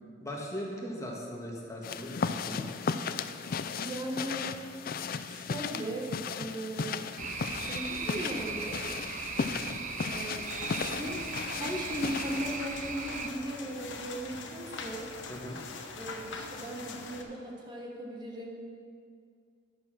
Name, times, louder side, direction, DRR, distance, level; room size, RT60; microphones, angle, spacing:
voice 1, 0.2-2.7 9.4-9.7 15.3-15.6, equal, 15° left, -2 dB, 1.5 m, -39 dB
sound 1, 1.8-12.6, left 5 dB, 50° left, 0.4 m, -36 dB
voice 2, 3.8-4.4 5.2-7.1 7.6-8.8 9.1-9.4 10.0-15.1 15.9-18.6, right 1 dB, 25° right, -2 dB, 1.2 m, -38 dB
sound 2, 7.2-13.3, right 5 dB, 40° right, 0.5 m, -38 dB
sound 3, 10.4-17.2, left 4 dB, 75° left, 1.0 m, -42 dB
10.5 x 6.8 x 6.2 m, 2.2 s
head